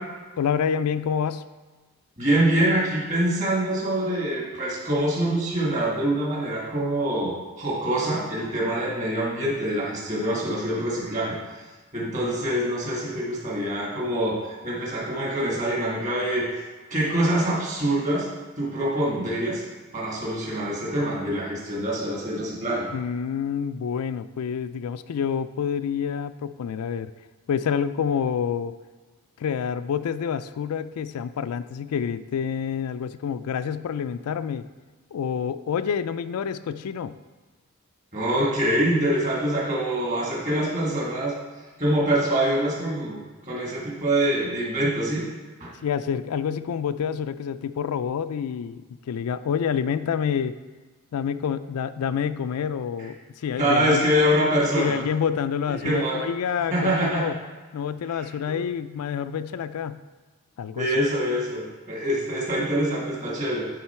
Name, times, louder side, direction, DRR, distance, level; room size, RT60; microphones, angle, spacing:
voice 1, 0.4-1.4 22.9-27.1 27.5-28.7 29.4-34.7 35.1-37.2 45.8-50.6 51.1-54.1 54.8-57.4 57.7-60.0 60.6-60.9, left 7 dB, 85° left, 13 dB, 0.3 m, -28 dB
voice 2, 2.2-11.4 11.9-16.5 16.9-18.3 18.6-19.6 19.9-22.9 38.1-41.4 41.8-45.3 45.6-45.7 53.6-55.0 55.8-56.3 56.7-57.3 58.1-58.6 60.8-63.7, right 1 dB, 35° right, -4 dB, 1.7 m, -25 dB
10.5 x 3.8 x 4.3 m, 1.3 s
head